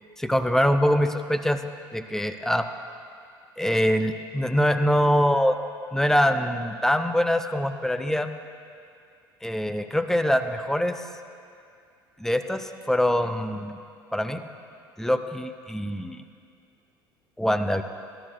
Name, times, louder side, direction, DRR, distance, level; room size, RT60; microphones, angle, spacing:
voice 1, 0.2-1.6 1.9-2.7 3.6-5.6 5.9-8.3 9.4-10.9 12.2-13.8 14.1-14.4 15.0-16.2 17.4-17.8, equal, 5° left, 9 dB, 0.6 m, -24 dB
20.5 x 13.5 x 2.2 m, 2.4 s
figure-of-eight pair, 60°, 12 cm